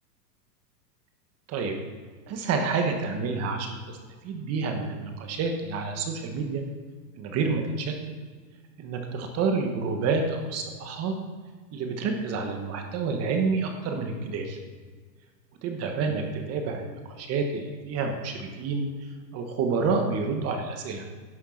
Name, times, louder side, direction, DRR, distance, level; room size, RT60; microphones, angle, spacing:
voice 1, 2.3-3.8 4.2-6.6 7.1-7.9 8.8-11.1 11.7-14.6 15.6-18.9 19.3-21.0, right 4 dB, 30° right, 4 dB, 1.4 m, -28 dB
11.0 x 6.6 x 6.4 m, 1.5 s
supercardioid pair, 150°, 49 cm